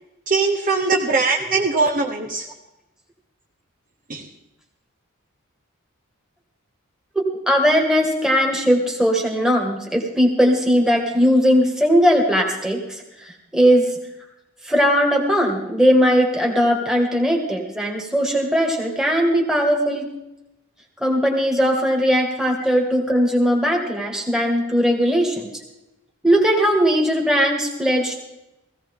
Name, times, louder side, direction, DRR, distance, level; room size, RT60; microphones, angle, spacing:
voice 1, 0.3-2.5 4.1-4.3, right 4 dB, 35° right, 2 dB, 0.9 m, -21 dB
voice 2, 7.2-13.9 14.6-20.1 21.0-25.5 26.2-28.2, equal, ahead, 1 dB, 1.9 m, -19 dB
17.0 x 16.0 x 3.7 m, 0.92 s
head